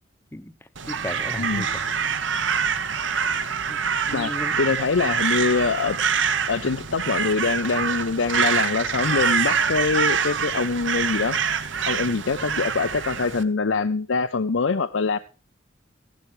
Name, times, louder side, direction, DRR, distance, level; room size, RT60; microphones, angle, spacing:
voice 1, 0.3-1.8 3.7-4.6, left 1 dB, 10° left, 12 dB, 0.7 m, -36 dB
Crow, 0.8-13.4, right 6 dB, 75° right, 1.0 m, -25 dB
voice 2, 4.1-6.0 6.5-11.4 11.9-15.2, left 4 dB, 90° left, 12 dB, 0.6 m, -24 dB
15.0 x 11.0 x 3.2 m, 0.33 s
head